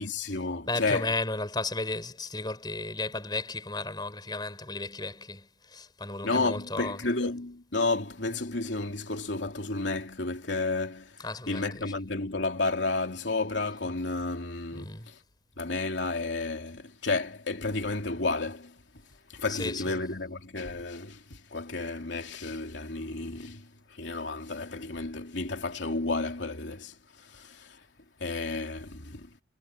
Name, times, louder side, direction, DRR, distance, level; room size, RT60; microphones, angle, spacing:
voice 1, 0.0-1.1 6.2-15.2 15.6-18.8 19.3-27.8 28.2-29.3, left 3 dB, 90° left, 2.9 m, -32 dB
voice 2, 0.7-7.0 11.2-11.9 14.7-15.1 19.5-19.8, left 2 dB, 25° left, 4.3 m, -34 dB
head